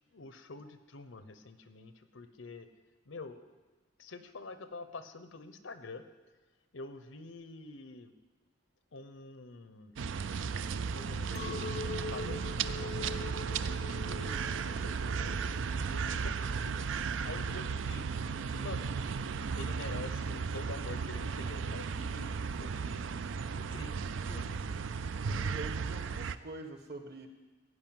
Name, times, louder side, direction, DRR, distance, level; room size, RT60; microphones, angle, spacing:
voice 1, 0.1-2.7 3.1-3.5 4.0-6.0 6.7-8.1 8.9-9.9 10.9-15.5 15.9-16.8 17.2-18.1 18.5-18.9 19.5-23.1 23.5-24.7, left 3 dB, 85° left, 10 dB, 0.9 m, -47 dB
sound 1, 10.0-26.4, right 5 dB, 80° right, 0.4 m, -35 dB
Chink clink, 11.3-16.8, left 4 dB, 40° left, 0.6 m, -44 dB
voice 2, 25.2-27.3, right 2 dB, 55° right, 6 dB, 1.4 m, -45 dB
16.0 x 5.4 x 9.1 m, 1.3 s
head